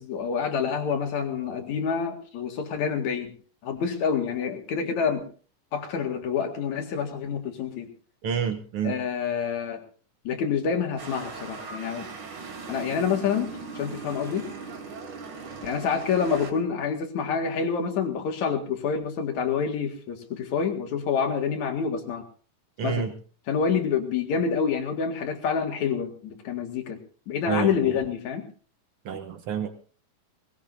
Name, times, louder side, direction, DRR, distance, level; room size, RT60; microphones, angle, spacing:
voice 1, 0.0-3.3 3.6-5.3 5.7-7.9 8.8-9.8 10.2-12.1 12.7-14.5 15.6-22.2 22.8-23.1 23.5-27.0 27.3-28.5, left 6 dB, 60° left, 4 dB, 3.0 m, -27 dB
voice 2, 8.2-8.9 22.8-23.1 27.5-27.7 29.0-29.7, right 8 dB, 85° right, 8 dB, 1.2 m, -28 dB
sound 1, 11.0-16.5, right 4 dB, 60° right, 4.2 m, -39 dB
21.0 x 20.0 x 2.7 m, 0.40 s
omnidirectional pair, 4.0 m